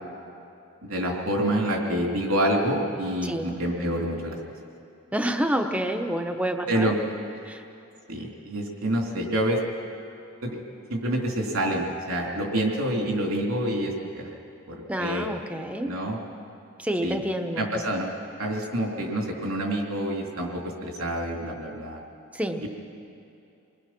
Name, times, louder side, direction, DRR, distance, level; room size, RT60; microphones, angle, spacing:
voice 1, 0.8-4.4 6.7-7.0 8.1-9.6 10.4-10.6 10.9-14.3 14.7-15.3 15.8-16.2 17.0-17.2 17.6-18.1 18.4-22.0, right 1 dB, 75° right, 0 dB, 3.5 m, -27 dB
voice 2, 5.1-6.9 7.4-7.6 14.9-15.9 16.8-17.9 22.3-22.6, right 1 dB, 5° right, 5 dB, 1.0 m, -28 dB
29.5 x 21.0 x 6.1 m, 2.7 s
head